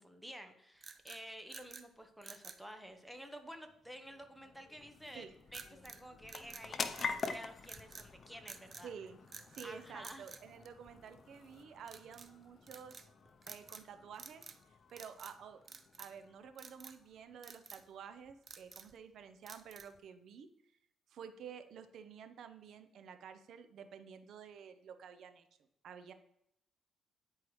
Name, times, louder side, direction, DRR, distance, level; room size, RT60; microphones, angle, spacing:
voice 1, 0.0-5.3 5.5-8.9 9.6-10.3, equal, ahead, 6 dB, 1.0 m, -51 dB
sound 1, 0.8-1.9 2.2-2.6 5.5-6.0 6.3-7.4 7.6-8.1 8.5-8.9 9.3-9.7 10.0-11.2 11.8-12.3 12.7-13.1 13.4-13.9 14.1-14.6 14.9-15.4 15.7-16.2 16.6-17.0 17.4-17.8 18.3-19.0 19.5-20.0, right 5 dB, 35° right, 0.5 m, -52 dB
sound 2, 3.3-18.2, left 5 dB, 45° left, 0.6 m, -47 dB
voice 2, 8.8-9.2 9.5-13.1 13.5-14.4 14.9-15.6 16.0-20.5 21.1-25.4 25.8-26.1, right 7 dB, 70° right, 9 dB, 0.7 m, -51 dB
9.8 x 4.7 x 3.2 m, 0.78 s
cardioid pair, 90°, 0 cm